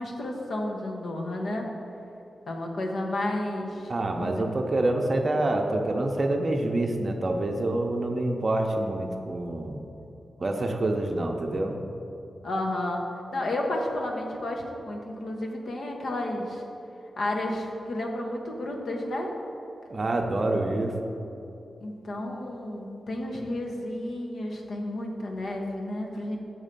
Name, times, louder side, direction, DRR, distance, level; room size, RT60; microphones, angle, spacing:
voice 1, 0.0-1.7 2.5-3.9 4.2-4.4 12.4-13.0 13.3-16.6 17.2-19.3 21.8-26.4, left 1 dB, 75° left, 1 dB, 0.8 m, -31 dB
voice 2, 3.9-9.8 10.4-11.7 19.9-20.9, right 2 dB, 50° right, 2 dB, 0.6 m, -27 dB
7.1 x 3.2 x 5.2 m, 2.9 s
cardioid pair, 60°, 0 cm